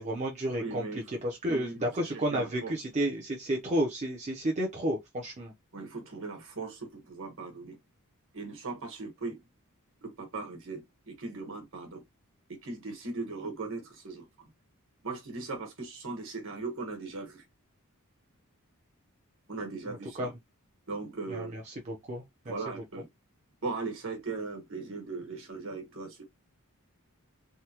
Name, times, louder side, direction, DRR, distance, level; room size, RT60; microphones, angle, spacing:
voice 1, 0.0-5.5 19.9-20.3 21.3-22.7, right 1 dB, 30° right, 0.7 m, -32 dB
voice 2, 0.6-1.2 1.5-2.8 5.7-7.8 8.3-9.4 10.0-12.0 12.5-14.5 15.0-17.4 19.5-20.3 20.9-21.5 22.5-23.1 23.6-26.2, right 3 dB, 60° right, 1.4 m, -39 dB
3.5 x 2.2 x 2.9 m
head